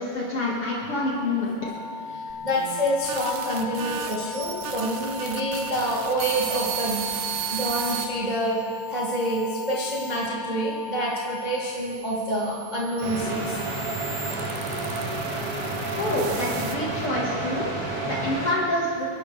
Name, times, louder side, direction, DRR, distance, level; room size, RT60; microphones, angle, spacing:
voice 1, 0.0-1.5 16.0-19.0, left 1 dB, 80° left, -5 dB, 1.2 m, -27 dB
sound 1, 1.6-11.6, left 5 dB, 50° left, 4.5 m, -37 dB
voice 2, 2.1-8.6 8.9-13.6, right 1 dB, 25° right, -6 dB, 0.9 m, -27 dB
sound 2, 2.3-8.1 8.7-10.3 11.1-17.1, right 9 dB, 80° right, 2.6 m, -36 dB
sound 3, 13.0-18.5, right 2 dB, 50° right, 5.3 m, -30 dB
29.5 x 12.0 x 3.5 m, 2.4 s
omnidirectional pair, 5.9 m